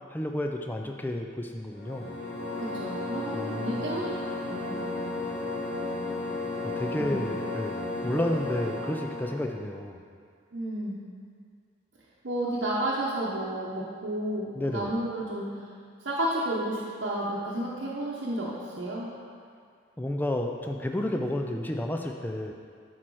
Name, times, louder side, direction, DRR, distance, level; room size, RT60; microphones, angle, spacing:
voice 1, 0.0-2.1 3.3-4.0 6.6-10.0 14.5-14.9 20.0-22.5, left 1 dB, 10° left, 3 dB, 0.4 m, -31 dB
sound 1, 1.7-9.5, left 2 dB, 60° left, 1.9 m, -34 dB
voice 2, 2.6-4.1 4.5-4.7 6.9-7.2 10.5-11.0 12.2-15.5 16.0-19.1, right 1 dB, 65° right, -7 dB, 0.9 m, -31 dB
10.0 x 4.4 x 4.7 m, 2.2 s
head